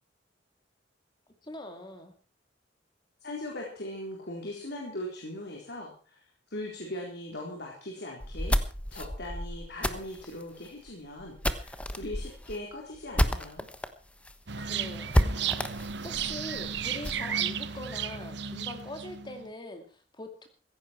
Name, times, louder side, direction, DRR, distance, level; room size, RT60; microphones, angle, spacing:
voice 1, 1.4-2.1 14.6-15.4 16.0-20.5, left 1 dB, 25° left, 5 dB, 2.4 m, -42 dB
voice 2, 3.2-6.2 6.5-8.6 8.9-13.7, left 1 dB, 60° left, 0 dB, 4.2 m, -40 dB
sound 1, 8.2-13.9 14.2-14.3 14.6-14.7 15.1-17.2, equal, 5° left, 1.2 m, -30 dB
sound 2, 14.5-19.5, right 8 dB, 65° right, 1.1 m, -34 dB
16.0 x 15.5 x 4.7 m, 0.39 s
head